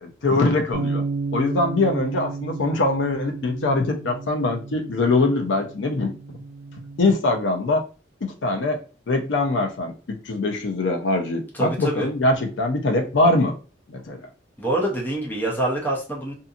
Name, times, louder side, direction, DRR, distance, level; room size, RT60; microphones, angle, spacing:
voice 1, 0.0-1.0 1.3-6.1 7.0-7.8 8.2-8.8 9.1-13.5 13.9-14.2, left 2 dB, 85° left, 4 dB, 0.5 m, -22 dB
sound 1, 0.7-7.0, right 3 dB, 70° right, 0.6 m, -32 dB
voice 2, 11.5-12.1 14.6-16.3, right 1 dB, 10° left, -2 dB, 0.7 m, -25 dB
2.7 x 2.6 x 2.4 m, 0.34 s
head